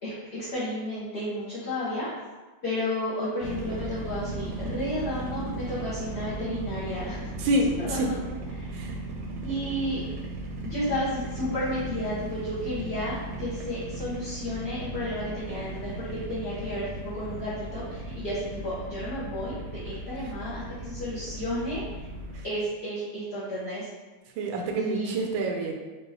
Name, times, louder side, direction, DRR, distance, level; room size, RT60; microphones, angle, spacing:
voice 1, 0.0-2.1 2.6-7.3 7.9-8.2 8.5-8.8 9.4-10.0 10.6-19.5 19.8-21.8 22.4-23.9 24.8-25.1, left 1 dB, 45° left, -11 dB, 0.9 m, -32 dB
sound 1, 3.4-22.4, right 2 dB, 70° right, 1.2 m, -36 dB
voice 2, 7.4-8.1 8.7-8.9 24.4-25.7, right 1 dB, 90° right, 1 dB, 1.4 m, -27 dB
4.7 x 2.5 x 3.2 m, 1.2 s
omnidirectional pair, 2.1 m